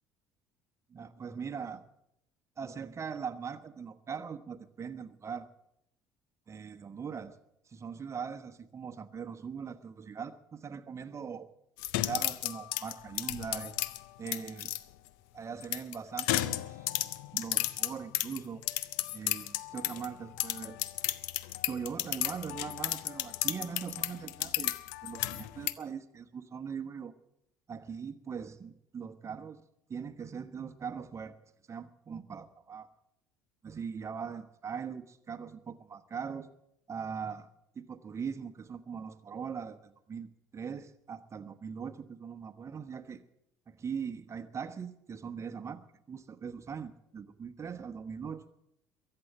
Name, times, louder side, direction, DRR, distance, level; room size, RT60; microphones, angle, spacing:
voice 1, 0.9-1.8 2.6-5.5 6.5-7.4 7.6-11.5 12.1-13.8 14.2-14.7 15.3-16.9 17.3-18.6 19.1-20.8 21.7-24.7 25.0-27.1 27.7-29.6 29.9-31.4 31.7-32.9 33.6-36.5 36.9-37.5 37.7-43.2 43.7-48.5, right 6 dB, 30° right, 9 dB, 1.2 m, -41 dB
sound 1, 11.8-14.8 15.6-20.1 20.4-25.7, left 16 dB, 65° left, 0.7 m, -33 dB
22.5 x 7.9 x 7.4 m, 0.79 s
figure-of-eight pair, 60°, 10 cm